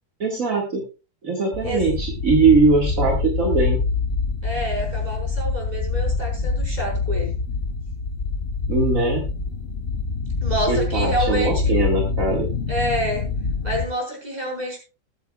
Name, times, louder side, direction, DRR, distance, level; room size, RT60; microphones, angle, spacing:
voice 1, 0.2-0.8 1.2-3.8 8.7-9.3 10.7-12.5, right 3 dB, 60° right, -1 dB, 2.4 m, -20 dB
sound 1, 1.5-13.9, left 4 dB, 45° left, 1.0 m, -25 dB
voice 2, 4.4-7.3 10.4-11.7 12.7-13.2 13.6-14.8, equal, 25° right, -1 dB, 5.0 m, -27 dB
20.0 x 8.8 x 2.4 m, 0.31 s
omnidirectional pair, 1.6 m